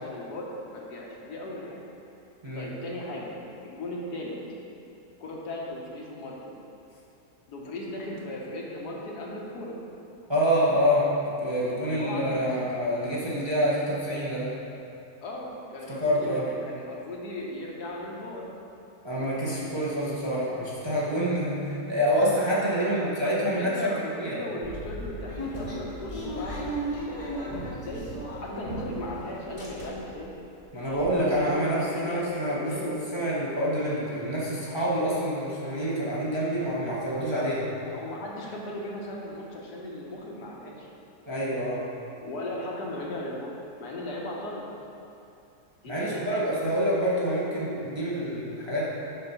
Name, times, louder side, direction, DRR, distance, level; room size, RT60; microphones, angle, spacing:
voice 1, 0.0-1.8 2.5-3.4 3.6-4.4 5.2-6.6 7.5-9.8 11.6-12.7 15.2-18.5 22.5-28.0 28.4-30.3 30.8-33.3 37.9-40.9 42.2-43.5 43.8-44.7 45.8-46.4, left 1 dB, 80° left, -2 dB, 1.5 m, -37 dB
voice 2, 10.3-14.5 15.9-16.5 19.0-24.4 30.7-37.7 41.3-41.9 45.9-48.9, equal, 20° right, -8 dB, 0.9 m, -27 dB
sound 1, 24.6-29.1 29.4-30.2 30.6-30.7 30.9-31.1, right 1 dB, 25° left, 1.1 m, -36 dB
7.1 x 4.3 x 5.6 m, 2.7 s
omnidirectional pair, 1.7 m